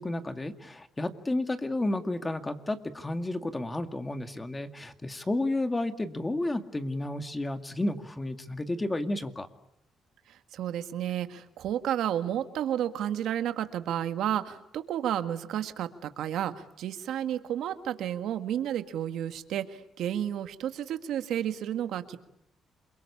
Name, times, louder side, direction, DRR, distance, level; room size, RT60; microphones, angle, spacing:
voice 1, 0.0-9.5, left 2 dB, 20° left, 7 dB, 2.2 m, -32 dB
voice 2, 10.3-22.2, right 10 dB, 80° right, 9 dB, 1.7 m, -31 dB
28.0 x 23.0 x 8.6 m, 0.80 s
cardioid pair, 90°, 0 cm